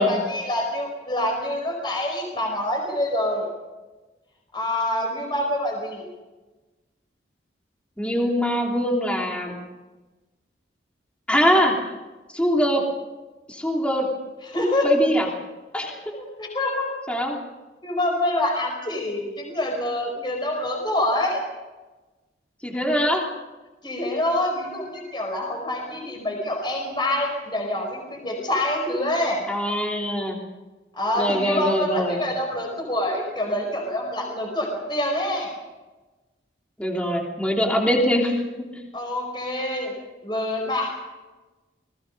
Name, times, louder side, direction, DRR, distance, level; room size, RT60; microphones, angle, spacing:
voice 1, 0.0-3.5 4.5-6.1 14.5-14.9 16.1-16.9 17.8-21.4 23.8-29.4 30.9-35.5 38.9-39.9 40.2-40.9, left 1 dB, 25° left, 2 dB, 4.9 m, -26 dB
voice 2, 8.0-9.6 11.3-11.8 12.3-12.8 13.5-14.1 14.8-15.3 15.7-16.0 17.1-17.4 22.6-23.2 29.5-30.4 31.1-32.2 36.8-38.7, equal, 5° left, -1 dB, 3.1 m, -22 dB
28.5 x 20.5 x 5.4 m, 1.2 s
head